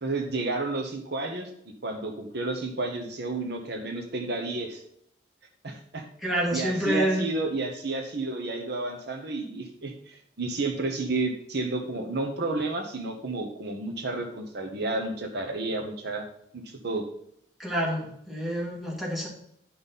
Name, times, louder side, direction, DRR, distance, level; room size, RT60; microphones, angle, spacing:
voice 1, 0.0-1.5 1.8-4.8 5.6-6.0 6.5-16.2 16.5-17.1, right 2 dB, 60° right, 5 dB, 1.0 m, -31 dB
voice 2, 6.2-7.3 17.6-19.3, equal, ahead, -5 dB, 2.4 m, -28 dB
10.5 x 5.5 x 4.1 m, 0.71 s
head